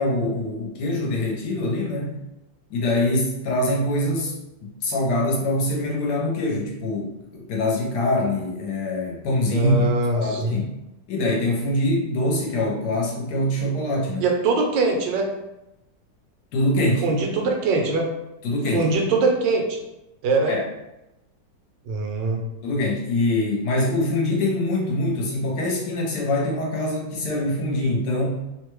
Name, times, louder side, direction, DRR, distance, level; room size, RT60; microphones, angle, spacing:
voice 1, 0.0-2.2 2.7-4.3 4.6-9.7 10.2-10.7 11.1-14.3 16.5-17.0 18.4-18.9 20.5-20.6 22.6-28.4, left 1 dB, 70° left, -1 dB, 1.2 m, -24 dB
voice 2, 9.5-10.5 14.2-15.3 17.0-18.1 18.7-19.8 20.2-20.6 21.9-22.4, right 3 dB, 85° right, 2 dB, 1.3 m, -22 dB
3.1 x 2.2 x 3.0 m, 0.91 s
omnidirectional pair, 2.0 m